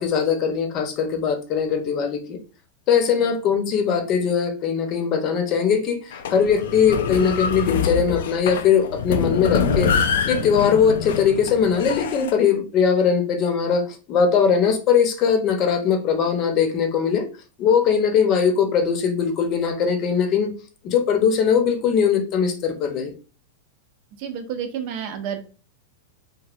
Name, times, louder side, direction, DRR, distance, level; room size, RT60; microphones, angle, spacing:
voice 1, 0.0-2.4 2.9-9.9 10.3-17.2 17.6-20.5 20.8-23.1, left 6 dB, 40° left, 5 dB, 0.7 m, -20 dB
sound 1, 6.1-12.3, left 6 dB, 75° left, 0.3 m, -25 dB
voice 2, 24.2-25.4, right 8 dB, 50° right, 7 dB, 0.6 m, -30 dB
3.0 x 2.6 x 2.5 m, 0.36 s
hypercardioid pair, 125°, 0 cm